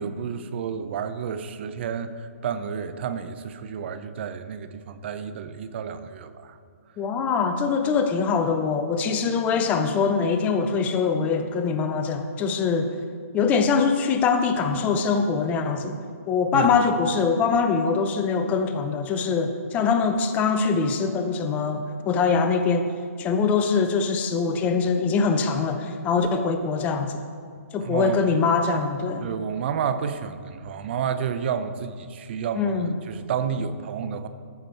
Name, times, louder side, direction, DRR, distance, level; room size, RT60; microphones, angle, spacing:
voice 1, 0.0-6.6 16.5-16.8 27.8-28.2 29.2-34.3, right 7 dB, 45° right, 11 dB, 0.6 m, -30 dB
voice 2, 7.0-12.9 13.3-16.0 16.3-22.9 23.2-27.2 27.7-29.3 32.6-32.9, left 5 dB, 20° left, 7 dB, 0.6 m, -23 dB
13.5 x 6.1 x 4.5 m, 2.1 s
hypercardioid pair, 140°, 8 cm